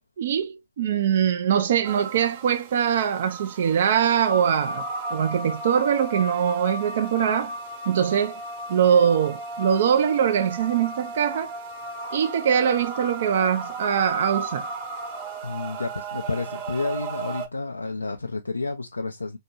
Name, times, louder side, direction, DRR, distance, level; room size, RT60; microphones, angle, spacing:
voice 1, 0.0-4.8 5.1-7.5 7.9-8.4 8.7-11.5 12.1-14.7, right 8 dB, 55° right, 0.6 m, -22 dB
sound 1, 1.8-17.5, right 2 dB, 35° right, 1.2 m, -35 dB
voice 2, 15.4-19.4, left 3 dB, 85° left, 0.4 m, -30 dB
4.3 x 2.7 x 2.3 m
figure-of-eight pair, 120°, 0 cm